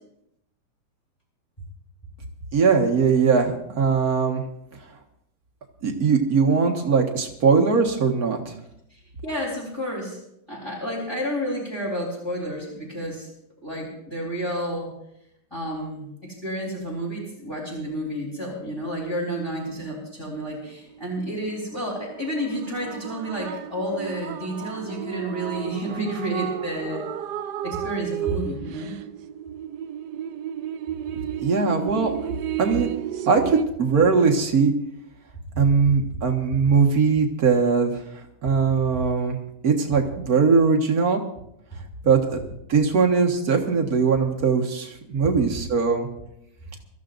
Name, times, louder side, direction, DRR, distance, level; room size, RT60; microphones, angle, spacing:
voice 1, 2.5-4.4 5.8-8.6 31.4-32.1 32.6-32.9 33.3-34.7 35.6-39.4 39.6-41.2 42.0-42.2 42.7-46.1, right 5 dB, 55° right, 2 dB, 2.1 m, -20 dB
voice 2, 8.9-10.2 10.5-13.3 13.6-14.9 15.5-27.1 27.6-28.9 35.5-35.9, equal, 15° left, -6 dB, 3.9 m, -30 dB
sound 1, 20.9-33.6, right 10 dB, 70° right, 1.3 m, -33 dB
25.0 x 14.0 x 2.6 m, 0.77 s
omnidirectional pair, 1.9 m